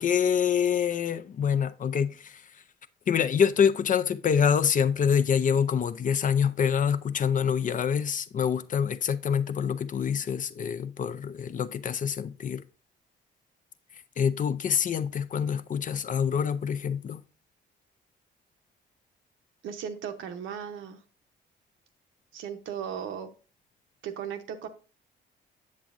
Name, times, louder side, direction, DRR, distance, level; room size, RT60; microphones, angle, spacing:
voice 1, 0.0-2.4 3.1-12.6 14.2-17.2, left 7 dB, 40° left, 0.4 m, -26 dB
voice 2, 19.6-21.0 22.3-23.3 24.0-24.7, right 8 dB, 80° right, 0.9 m, -36 dB
7.5 x 7.1 x 2.5 m
cardioid pair, 90°, 20 cm